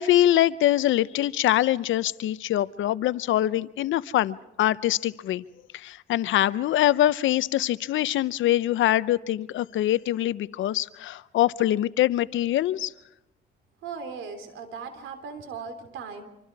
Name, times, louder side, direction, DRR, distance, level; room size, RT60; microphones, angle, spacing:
voice 1, 0.0-5.4 5.7-12.9, left 13 dB, 75° left, 17 dB, 0.7 m, -24 dB
voice 2, 13.8-16.2, right 5 dB, 80° right, 8 dB, 3.6 m, -38 dB
26.0 x 25.0 x 4.8 m, 0.90 s
cardioid pair, 90°, 20 cm